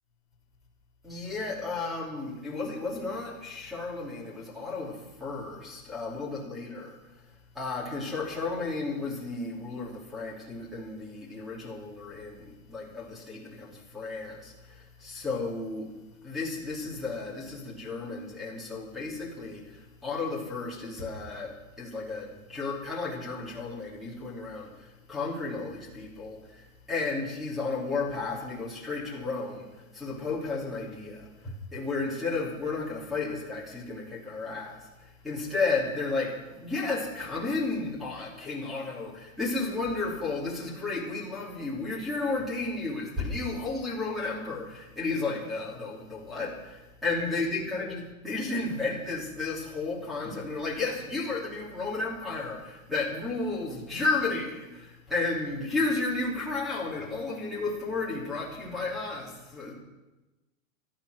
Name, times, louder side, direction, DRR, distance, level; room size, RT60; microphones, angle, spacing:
voice 1, 1.0-15.9 16.2-59.7, left 3 dB, ahead, -4 dB, 3.0 m, -33 dB
16.0 x 12.0 x 6.5 m, 1.1 s
supercardioid pair, 175°, 42 cm